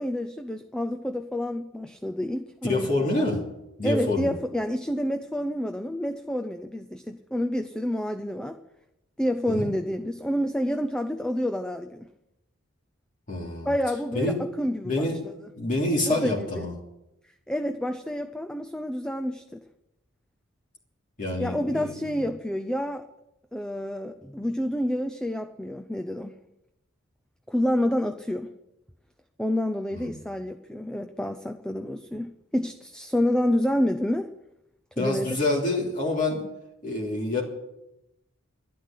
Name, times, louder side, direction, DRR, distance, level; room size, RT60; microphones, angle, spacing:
voice 1, 0.0-3.3 3.8-8.6 9.2-12.1 13.6-15.3 16.1-16.7 17.5-19.6 21.4-23.0 23.5-26.4 27.5-28.5 29.4-34.3 35.0-35.4, left 1 dB, 5° left, 7 dB, 0.6 m, -28 dB
voice 2, 2.6-3.4 3.8-4.3 9.5-9.7 13.3-13.7 14.1-14.4 14.8-15.2 15.6-16.7 21.2-22.1 29.9-30.1 35.0-36.4 36.8-37.4, left 2 dB, 40° left, -3 dB, 3.0 m, -27 dB
12.0 x 11.5 x 8.6 m, 0.90 s
head